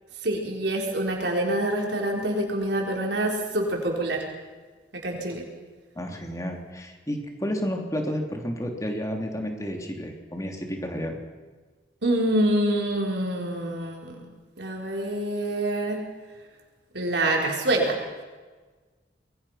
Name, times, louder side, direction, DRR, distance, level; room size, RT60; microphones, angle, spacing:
voice 1, 0.2-4.2 5.0-5.4 12.0-14.2 14.6-16.0 16.9-18.0, right 1 dB, 70° right, 0 dB, 4.7 m, -26 dB
voice 2, 5.9-11.2, equal, 20° left, 3 dB, 3.2 m, -31 dB
26.0 x 22.5 x 5.9 m, 1.3 s
head